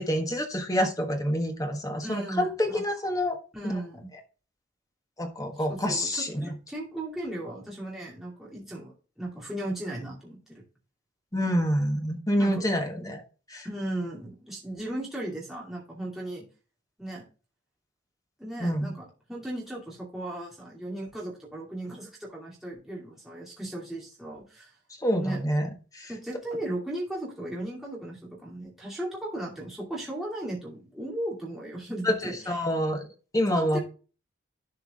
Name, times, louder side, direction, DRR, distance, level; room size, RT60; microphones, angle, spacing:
voice 1, 0.0-3.4 3.6-3.7 5.2-6.5 11.3-13.2 13.5-13.7 18.6-18.9 25.0-26.1 32.0-33.1 33.3-33.8, equal, 15° left, 4 dB, 1.4 m, -27 dB
voice 2, 2.0-2.8 3.5-4.1 5.7-10.6 12.4-12.6 13.6-16.5 17.0-17.2 18.4-24.7 25.2-25.4 26.1-32.6 33.5-33.8, right 1 dB, ahead, -5 dB, 2.6 m, -36 dB
11.5 x 4.7 x 3.6 m, 0.35 s
head